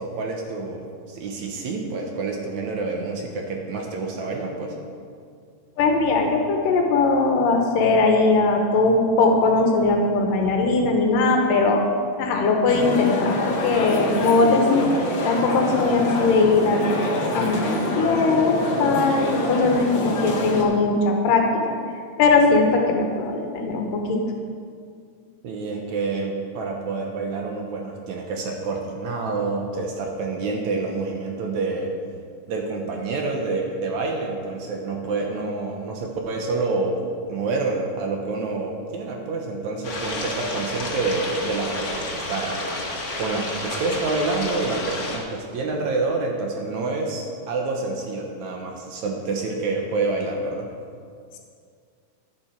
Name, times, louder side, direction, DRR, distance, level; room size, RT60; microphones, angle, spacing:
voice 1, 0.0-4.8 25.4-31.9 32.5-37.0 37.3-42.6 43.2-50.7, right 3 dB, 65° right, 1 dB, 2.2 m, -27 dB
voice 2, 5.8-11.8 12.2-14.8 15.2-16.8 17.3-21.8 22.2-24.2, left 3 dB, 80° left, 2 dB, 2.7 m, -20 dB
sound 1, 12.7-20.6, left 1 dB, 60° left, 1.2 m, -26 dB
sound 2, 39.8-45.2, left 2 dB, 40° left, 1.4 m, -30 dB
11.5 x 10.5 x 4.6 m, 2.2 s
omnidirectional pair, 3.9 m